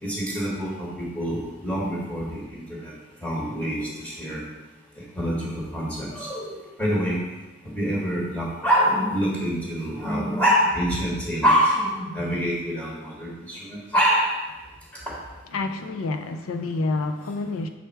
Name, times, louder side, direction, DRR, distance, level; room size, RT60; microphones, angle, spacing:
voice 1, 0.0-2.9 3.2-4.4 5.2-6.5 6.8-7.2 7.6-14.4 15.1-15.2, equal, 5° left, -5 dB, 1.0 m, -25 dB
voice 2, 15.5-17.7, left 3 dB, 70° left, 7 dB, 0.4 m, -28 dB
6.3 x 3.4 x 4.4 m, 1.1 s
head